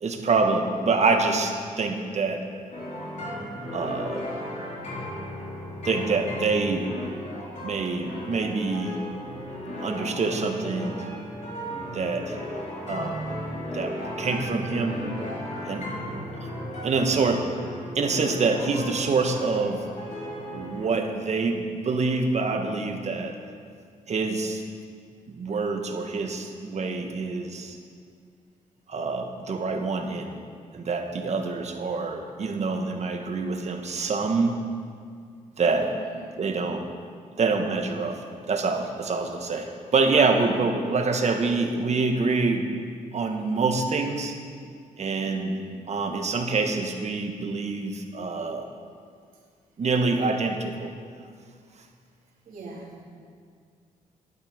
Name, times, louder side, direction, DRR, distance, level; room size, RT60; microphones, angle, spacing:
voice 1, 0.0-2.4 3.7-4.2 5.8-6.9 7.6-9.0 9.8-11.0 11.9-12.4 12.9-15.0 15.6-15.9 16.4-16.5 16.8-17.4 17.9-19.8 20.5-23.3 24.1-24.6 25.3-27.8 28.9-30.4 30.7-34.6 35.6-35.9 36.4-36.8 37.4-38.2 38.5-42.7 43.1-44.4 45.0-45.6 45.9-48.6 49.8-50.9, right 4 dB, 50° right, 4 dB, 1.5 m, -26 dB
sound 1, 2.7-20.9, equal, 55° left, 3.9 m, -35 dB
voice 2, 35.6-36.4 45.0-45.7 52.4-53.0, right 2 dB, 75° right, -4 dB, 3.2 m, -44 dB
12.5 x 11.5 x 5.2 m, 2.2 s
cardioid pair, 85°, 15 cm